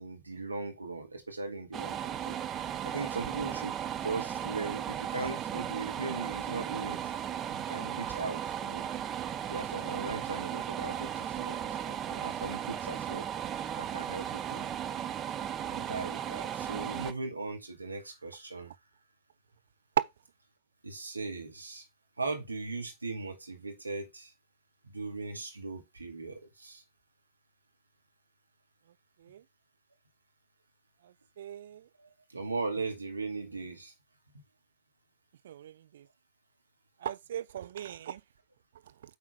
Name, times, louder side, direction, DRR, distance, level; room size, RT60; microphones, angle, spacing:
voice 1, 0.0-2.4 2.8-7.0 7.7-8.9 9.5-13.3 13.8-14.7 15.5-18.7 20.8-21.8 22.2-24.3 24.8-26.8 32.0-33.9, right 3 dB, 80° right, 2.1 m, -38 dB
sound 1, 1.7-17.1, right 9 dB, 30° right, 0.7 m, -36 dB
voice 2, 31.4-31.8 35.4-36.0 37.0-38.2, right 10 dB, 60° right, 0.7 m, -40 dB
8.6 x 4.3 x 3.6 m
figure-of-eight pair, 90°, 0 cm